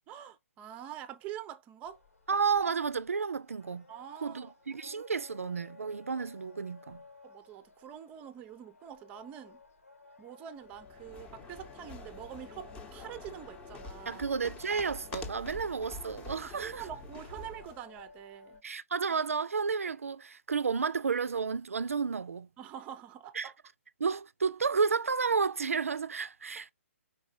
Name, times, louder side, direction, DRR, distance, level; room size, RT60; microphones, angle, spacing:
voice 1, 0.1-2.0 3.9-4.5 7.2-9.6 10.2-14.2 16.4-18.6 22.6-23.5, right 10 dB, 15° right, 0.5 m, -45 dB
sound 1, 1.8-18.6, left 3 dB, 80° left, 1.4 m, -55 dB
voice 2, 2.3-3.8 4.2-7.0 14.1-16.8 18.6-22.5 23.3-23.5 24.0-26.7, right 5 dB, 70° right, 0.4 m, -31 dB
sound 2, 10.7-17.8, left 3 dB, 15° left, 0.8 m, -47 dB
5.0 x 4.0 x 2.6 m
figure-of-eight pair, 140°, 8 cm